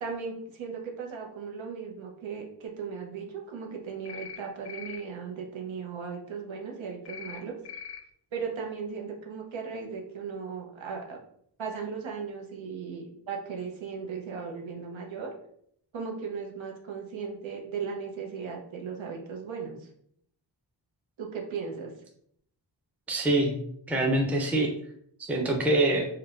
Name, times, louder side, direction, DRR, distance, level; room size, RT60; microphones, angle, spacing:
voice 1, 0.0-7.5 8.3-11.2 11.6-15.3 15.9-19.9 21.2-21.9, right 5 dB, 85° right, 0 dB, 0.8 m, -37 dB
sound 1, 4.0-4.4 4.6-5.0 7.0-7.4 7.6-8.0, left 7 dB, 65° left, 0.6 m, -41 dB
voice 2, 23.1-23.5 23.9-24.7 25.3-26.1, right 2 dB, 5° right, 0 dB, 0.5 m, -24 dB
4.5 x 2.2 x 2.4 m, 0.68 s
wide cardioid pair, 125°, 46 cm